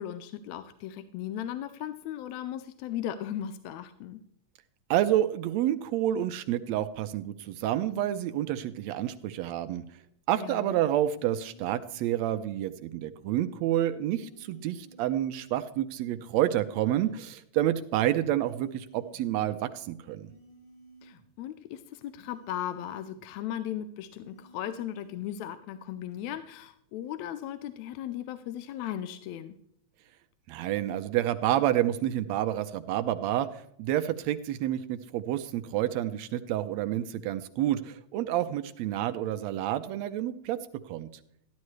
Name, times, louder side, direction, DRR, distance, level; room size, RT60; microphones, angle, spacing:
voice 1, 0.0-4.2 10.3-10.8 21.0-29.6, left 11 dB, 80° left, 11 dB, 1.8 m, -37 dB
voice 2, 4.9-9.8 10.3-20.3 30.5-40.6 40.9-41.1, right 12 dB, 80° right, 10 dB, 1.7 m, -29 dB
sound 1, 11.1-12.3 14.1-15.3 16.1-17.3 18.1-19.3 20.1-21.3 22.1-23.3 24.1-25.3 26.1-26.4, right 2 dB, 50° left, 0.4 m, -55 dB
13.5 x 11.5 x 3.2 m, 0.71 s
omnidirectional pair, 3.4 m